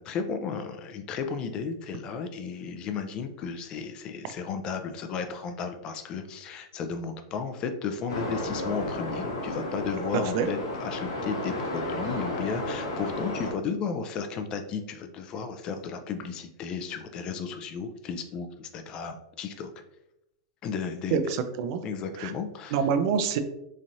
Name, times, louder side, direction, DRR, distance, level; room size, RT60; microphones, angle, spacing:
voice 1, 0.0-19.7 20.6-21.2 21.8-22.8, left 5 dB, 40° left, 7 dB, 0.4 m, -34 dB
sound 1, 8.1-13.5, left 1 dB, 85° left, 1.0 m, -33 dB
voice 2, 10.1-10.5 21.1-21.8 22.2-22.3 22.7-23.4, right 7 dB, 60° right, 9 dB, 0.4 m, -26 dB
3.1 x 2.5 x 2.6 m, 0.85 s
hypercardioid pair, 110°, 2 cm